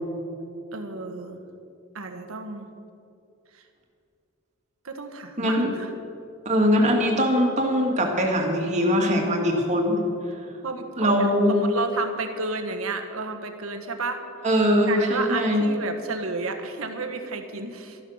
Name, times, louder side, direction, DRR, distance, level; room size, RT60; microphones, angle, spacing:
voice 1, 0.7-1.4 1.9-2.7 3.5-3.6 4.8-5.9 10.6-14.2 14.8-18.0, right 3 dB, 90° right, 6 dB, 1.3 m, -32 dB
voice 2, 5.4-5.7 6.5-10.0 11.0-11.6 14.4-15.6, equal, 35° right, 1 dB, 2.0 m, -21 dB
13.5 x 11.0 x 6.4 m, 2.6 s
head